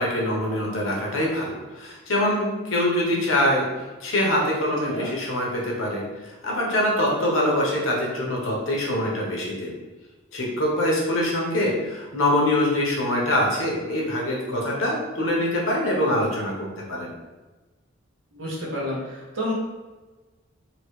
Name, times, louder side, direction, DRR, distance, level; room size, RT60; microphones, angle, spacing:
voice 1, 0.0-3.6 4.0-9.7 10.3-17.1, left 1 dB, 80° left, -2 dB, 0.9 m, -24 dB
voice 2, 18.3-19.0 19.4-19.5, left 1 dB, 75° right, -5 dB, 1.0 m, -28 dB
3.0 x 2.8 x 3.1 m, 1.2 s
head